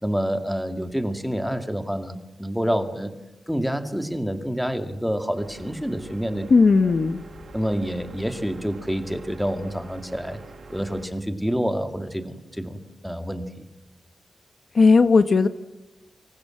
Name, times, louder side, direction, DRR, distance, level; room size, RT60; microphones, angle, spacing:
voice 1, 0.0-3.1 3.5-6.5 7.5-10.4 10.7-13.6, equal, ahead, 7 dB, 2.2 m, -28 dB
sound 1, 5.4-11.1, right 3 dB, 55° right, 6.0 m, -44 dB
voice 2, 6.5-7.2 14.7-15.5, left 4 dB, 50° left, 11 dB, 1.0 m, -16 dB
30.0 x 26.0 x 7.7 m, 1.0 s
wide cardioid pair, 160°, 0 cm